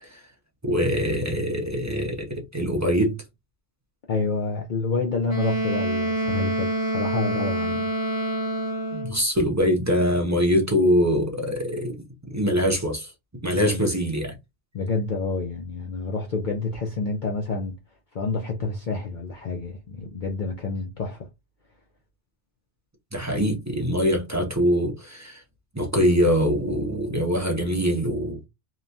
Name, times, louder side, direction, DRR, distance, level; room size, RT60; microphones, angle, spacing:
voice 1, 0.6-3.1 8.9-12.0 12.3-13.1 13.4-14.3 23.1-25.4 25.7-28.4, equal, 20° right, 0.5 m, -23 dB
voice 2, 4.1-7.9 13.6-13.8 14.7-17.8 18.1-21.3, left 3 dB, 55° left, 0.6 m, -28 dB
Wind instrument woodwind instrument, 5.3-9.2, right 1 dB, 30° left, 1.4 m, -26 dB
2.9 x 2.2 x 2.5 m
omnidirectional pair, 1.2 m